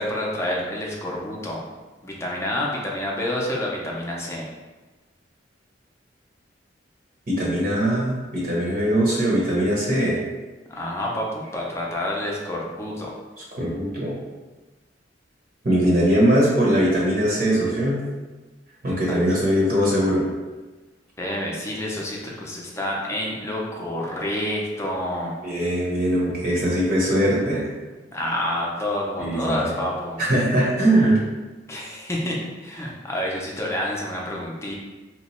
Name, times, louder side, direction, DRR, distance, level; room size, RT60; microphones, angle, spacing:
voice 1, 0.0-1.6 2.0-4.5 10.7-13.1 19.1-19.2 21.2-25.3 28.1-30.2 31.7-34.7, left 1 dB, 15° left, -3 dB, 0.5 m, -28 dB
voice 2, 7.3-10.2 13.5-14.1 15.6-18.0 18.8-20.2 25.4-27.7 29.2-29.7 30.2-31.2, right 1 dB, 50° right, -5 dB, 0.9 m, -21 dB
2.9 x 2.2 x 4.1 m, 1.2 s
head